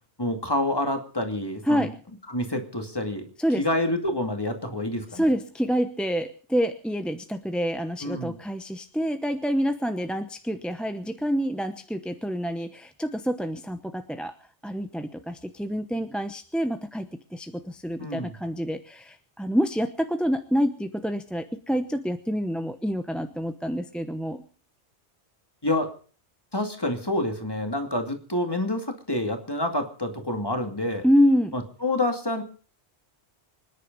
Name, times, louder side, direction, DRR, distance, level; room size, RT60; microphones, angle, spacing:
voice 1, 0.2-1.9 2.3-3.3 3.6-5.3 8.0-8.4 18.0-18.4 25.6-25.9 26.5-31.0 31.5-32.4, left 1 dB, 20° left, 5 dB, 2.4 m, -28 dB
voice 2, 1.7-2.0 3.4-3.6 5.1-14.3 14.6-24.4 31.0-31.5, equal, ahead, 8 dB, 0.7 m, -27 dB
25.5 x 10.5 x 5.3 m, 0.41 s
omnidirectional pair, 1.2 m